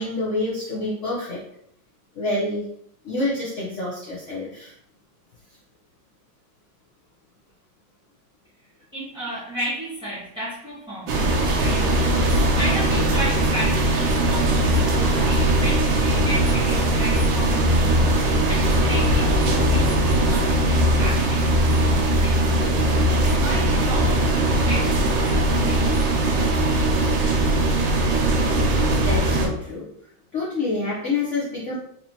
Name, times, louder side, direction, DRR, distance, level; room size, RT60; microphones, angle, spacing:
voice 1, 0.0-1.4 2.1-2.6 3.0-4.7 28.9-29.8 30.3-31.8, left 2 dB, 60° left, -6 dB, 0.8 m, -27 dB
voice 2, 8.9-11.2 11.6-18.0 18.5-26.0, equal, 5° right, -10 dB, 0.6 m, -33 dB
sound 1, 11.1-29.5, right 1 dB, 75° right, 1.4 m, -20 dB
4.1 x 3.0 x 2.7 m, 0.71 s
omnidirectional pair, 2.1 m